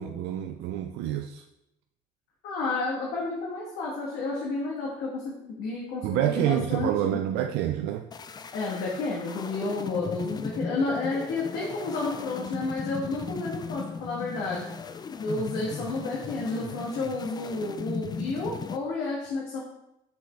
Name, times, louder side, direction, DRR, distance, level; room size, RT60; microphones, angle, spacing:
voice 1, 0.0-1.4 6.0-8.1, right 11 dB, 90° right, 6 dB, 0.4 m, -27 dB
voice 2, 2.4-7.2 8.5-14.7 15.2-19.6, left 3 dB, 85° left, -4 dB, 1.4 m, -31 dB
sound 1, 8.1-18.8, left 5 dB, 25° left, 0.4 m, -37 dB
6.1 x 5.3 x 3.4 m, 0.86 s
cardioid pair, 110°, 17 cm